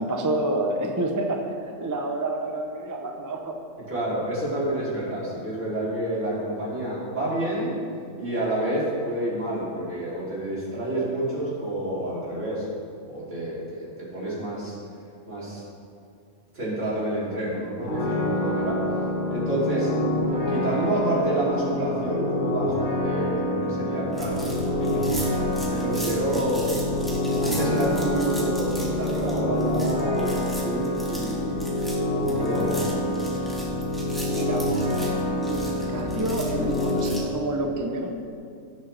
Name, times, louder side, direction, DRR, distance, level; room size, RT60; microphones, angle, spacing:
voice 1, 0.0-3.6 34.3-34.7 35.2-38.1, right 1 dB, 20° right, 2 dB, 0.6 m, -29 dB
voice 2, 3.9-7.8 8.2-12.7 13.1-14.8 15.3-15.6 16.5-18.8 19.3-19.9 20.3-25.1 25.7-26.9 27.4-31.6 32.1-33.1, right 1 dB, 70° right, -8 dB, 3.6 m, -29 dB
sound 1, 17.8-37.0, left 1 dB, 80° left, 2.6 m, -27 dB
sound 2, 24.1-37.2, right 1 dB, ahead, 2.1 m, -39 dB
17.0 x 7.5 x 3.4 m, 2.4 s
omnidirectional pair, 1.3 m